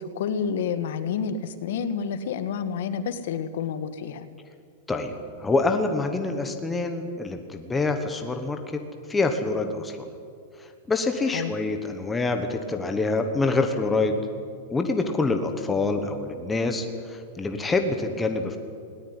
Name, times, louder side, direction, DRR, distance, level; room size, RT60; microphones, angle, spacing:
voice 1, 0.0-4.3 11.3-11.5, left 6 dB, 55° left, 11 dB, 1.6 m, -29 dB
voice 2, 5.4-8.8 9.1-10.1 10.6-14.2 14.7-18.6, left 3 dB, 5° left, 5 dB, 1.3 m, -26 dB
19.5 x 18.5 x 9.9 m, 2.2 s
supercardioid pair, 180°, 0 cm